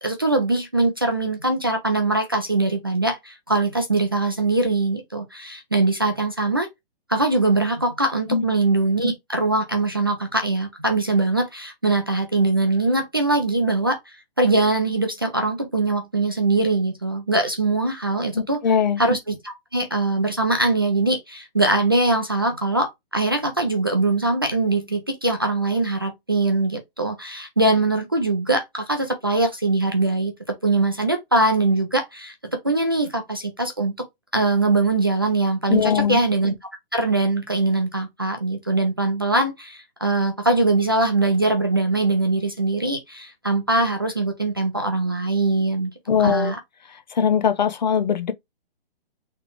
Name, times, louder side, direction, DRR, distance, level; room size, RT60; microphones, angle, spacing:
voice 1, 0.0-6.7 7.1-14.0 14.4-18.6 19.0-33.9 34.3-36.5 36.9-45.9 46.2-46.6, right 2 dB, 25° right, 0.4 m, -22 dB
voice 2, 18.3-19.0 35.7-36.2 46.1-46.5 47.1-48.3, left 7 dB, 45° left, 0.6 m, -20 dB
4.0 x 3.2 x 2.9 m
hypercardioid pair, 175°, 31 cm